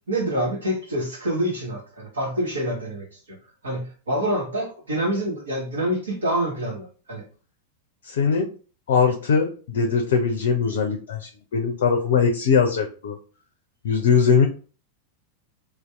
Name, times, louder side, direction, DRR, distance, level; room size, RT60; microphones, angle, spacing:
voice 1, 0.1-3.1 3.6-7.2, right 1 dB, 70° right, 1.1 m, -26 dB
voice 2, 8.0-8.5 8.9-13.2 13.8-14.5, left 6 dB, 60° left, 0.4 m, -21 dB
2.6 x 2.3 x 3.3 m
figure-of-eight pair, 90°, 0 cm